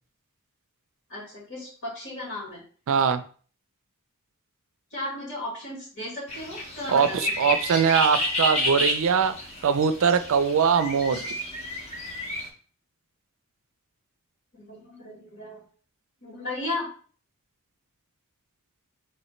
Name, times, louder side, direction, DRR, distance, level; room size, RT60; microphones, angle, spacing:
voice 1, 1.1-2.6 4.9-7.3 14.5-15.6 16.2-16.9, left 1 dB, 55° left, -4 dB, 2.0 m, -35 dB
voice 2, 2.9-3.2 6.9-9.3 9.6-11.3, right 6 dB, 60° right, 11 dB, 0.4 m, -22 dB
sound 1, 6.3-12.5, left 1 dB, 30° left, 0.8 m, -30 dB
3.1 x 3.0 x 4.2 m, 0.43 s
head